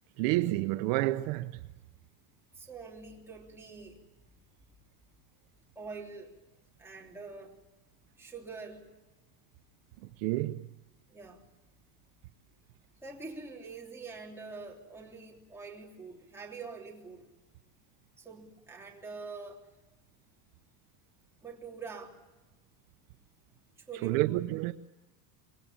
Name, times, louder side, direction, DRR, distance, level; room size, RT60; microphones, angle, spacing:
voice 1, 0.2-1.5 10.2-10.7 24.0-24.7, right 18 dB, 60° right, 0.8 m, -29 dB
voice 2, 2.5-4.0 5.7-6.3 6.8-7.6 8.2-8.9 11.1-11.4 13.0-17.3 18.2-19.7 21.4-22.2 23.8-24.4, right 4 dB, 5° right, 3.3 m, -45 dB
25.5 x 21.5 x 8.8 m
cardioid pair, 165°, 48 cm